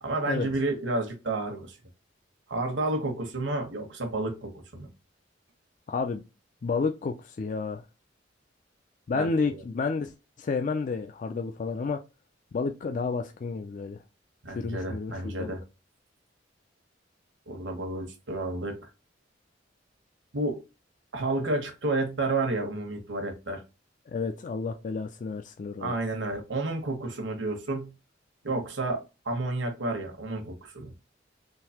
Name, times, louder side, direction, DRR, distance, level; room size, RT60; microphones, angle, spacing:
voice 1, 0.0-1.8 2.5-4.9 9.1-9.6 14.4-15.6 17.5-18.9 20.3-20.6 21.1-23.6 25.8-27.9 28.4-30.9, right 2 dB, 80° right, 1.1 m, -31 dB
voice 2, 5.9-6.2 6.6-7.8 9.1-12.0 12.5-14.0 14.5-15.5 24.1-26.0, left 4 dB, 45° left, 0.3 m, -31 dB
3.8 x 2.7 x 2.8 m
head